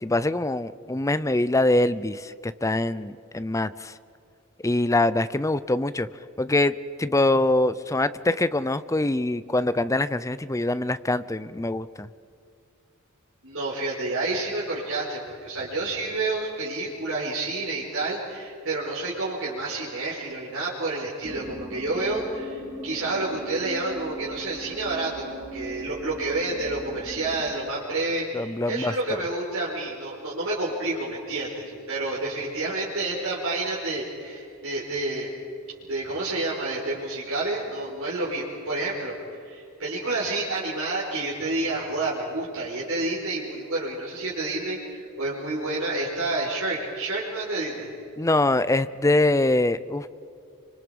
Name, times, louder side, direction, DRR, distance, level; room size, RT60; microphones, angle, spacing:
voice 1, 0.0-3.9 4.6-6.1 6.4-12.1 28.3-28.9 48.2-50.1, left 2 dB, 15° left, 14 dB, 0.6 m, -24 dB
voice 2, 13.4-35.3 35.9-39.1 39.4-47.9, right 2 dB, 60° right, -6 dB, 5.0 m, -29 dB
sound 1, 21.2-27.5, right 1 dB, 15° right, 3.8 m, -40 dB
29.0 x 25.5 x 5.3 m, 2.5 s
head